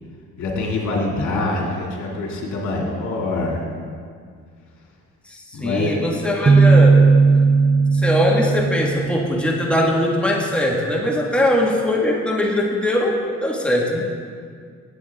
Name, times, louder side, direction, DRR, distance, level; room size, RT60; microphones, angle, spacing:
voice 1, 0.4-3.6 5.5-6.0, left 2 dB, 75° left, -2 dB, 2.4 m, -24 dB
voice 2, 5.3-7.0 7.9-14.0, left 1 dB, 5° left, -2 dB, 1.6 m, -21 dB
sound 1, 6.5-10.1, right 4 dB, 20° right, 0.3 m, -16 dB
16.0 x 8.5 x 3.6 m, 2.1 s
cardioid pair, 90°, 30 cm